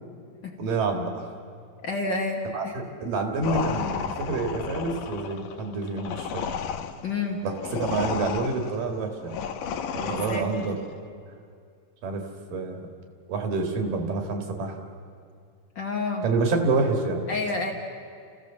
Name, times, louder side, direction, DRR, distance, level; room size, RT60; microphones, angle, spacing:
voice 1, 0.6-1.3 2.5-6.4 7.4-9.4 9.9-10.8 12.0-12.2 12.5-12.9 13.3-14.8 16.2-17.2, right 3 dB, 75° right, 3 dB, 3.7 m, -28 dB
voice 2, 1.8-2.8 7.0-7.4 10.0-10.5 15.7-16.3 17.3-17.7, left 3 dB, 60° left, 2 dB, 1.2 m, -29 dB
sound 1, 3.4-10.8, left 7 dB, 75° left, 2.4 m, -33 dB
30.0 x 16.0 x 7.1 m, 2.3 s
omnidirectional pair, 3.9 m